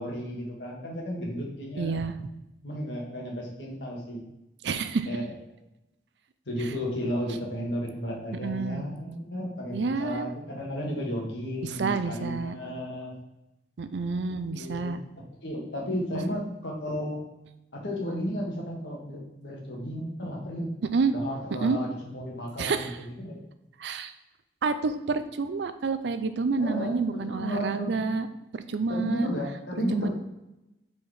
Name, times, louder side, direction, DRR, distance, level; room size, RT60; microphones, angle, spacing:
voice 1, 0.0-2.0 2.6-4.2 5.1-5.3 6.4-13.1 14.3-15.0 15.4-17.2 17.7-20.7 21.1-23.4 26.6-28.2 28.9-30.1, equal, 85° left, -2 dB, 1.7 m, -33 dB
voice 2, 1.8-2.1 4.6-5.1 8.4-8.9 9.7-10.3 11.6-12.6 13.8-15.0 16.3-16.4 20.9-21.1 21.6-21.8 22.6-23.0 23.8-24.1 24.6-28.3 28.5-29.3 29.9-30.1, right 4 dB, 80° right, 11 dB, 0.5 m, -28 dB
4.6 x 4.2 x 4.9 m, 0.92 s
head